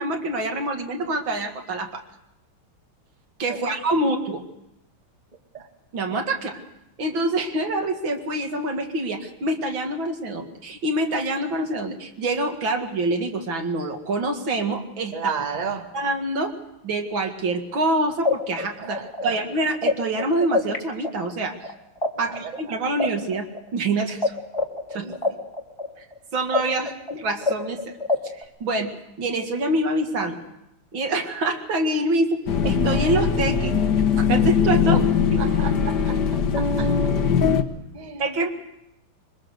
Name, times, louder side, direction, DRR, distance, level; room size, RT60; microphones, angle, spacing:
voice 1, 0.0-2.0 3.4-4.4 5.9-6.6 7.0-15.1 15.9-16.5 16.8-21.7 22.2-23.5 23.7-24.4 24.9-25.1 26.0-26.1 26.3-27.9 28.2-28.9 29.2-30.4 30.9-33.7 34.2-35.0 38.2-38.5, right 2 dB, 70° right, 4 dB, 2.7 m, -26 dB
voice 2, 15.1-15.9 18.5-19.4 22.2-22.5 24.9-25.2 34.9-35.1 35.4-37.1 37.9-38.3, right 5 dB, 20° right, 5 dB, 1.5 m, -33 dB
sound 1, 17.8-17.9 18.2-20.8 21.0-24.3 24.5-28.4, left 3 dB, 15° left, 1.9 m, -25 dB
sound 2, 32.5-37.6, left 6 dB, 55° left, 1.6 m, -21 dB
24.0 x 20.5 x 6.5 m, 0.85 s
omnidirectional pair, 2.3 m